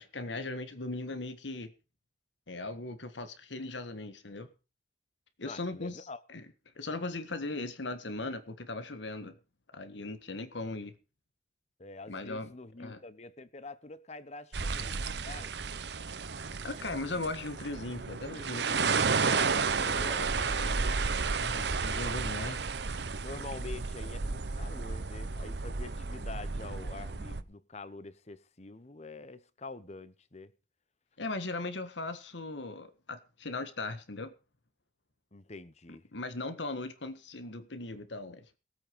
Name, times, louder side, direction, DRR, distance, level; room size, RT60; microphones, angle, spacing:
voice 1, 0.0-1.7 2.5-4.5 5.4-6.5 6.8-9.4 9.7-10.9 12.1-12.5 12.8-13.0 16.6-19.1 19.8-20.0 21.4-22.6 31.2-34.3 36.1-38.5, left 2 dB, 85° left, 1.7 m, -38 dB
voice 2, 5.4-6.2 11.8-15.5 19.3-20.8 22.4-22.6 23.2-30.5 35.3-36.0, left 3 dB, 40° left, 1.0 m, -46 dB
sound 1, 14.5-27.4, right 4 dB, 65° right, 0.9 m, -32 dB
19.5 x 8.7 x 5.3 m
head